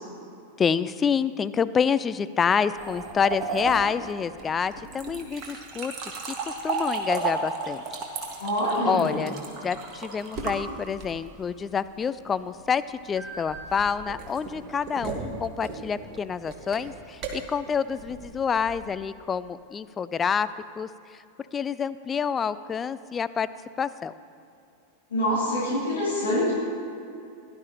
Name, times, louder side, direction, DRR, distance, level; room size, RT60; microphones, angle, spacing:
voice 1, 0.6-5.9 6.3-7.8 8.9-9.4 9.6-20.5 20.8-21.2 21.5-23.5 23.8-24.1, left 6 dB, 20° left, 15 dB, 0.3 m, -27 dB
sound 1, 2.8-11.4 13.2-18.9, right 4 dB, 35° right, 1.7 m, -34 dB
voice 2, 8.4-9.1 25.1-26.5, equal, 65° left, -8 dB, 3.0 m, -25 dB
16.5 x 11.5 x 2.9 m, 2.6 s
figure-of-eight pair, 90°, 0 cm